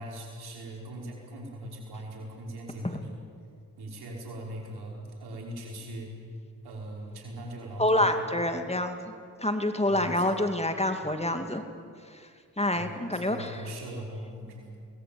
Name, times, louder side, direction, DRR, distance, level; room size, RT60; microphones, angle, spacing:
voice 1, 0.0-3.2 3.8-6.1 6.6-8.3 9.9-10.2 10.9-11.1 12.7-14.8, right 1 dB, 85° right, -1 dB, 5.6 m, -40 dB
voice 2, 7.8-9.1 9.4-11.6 12.6-13.5, left 1 dB, 15° left, 6 dB, 2.7 m, -27 dB
23.5 x 19.5 x 8.9 m, 2.2 s
cardioid pair, 50°, 37 cm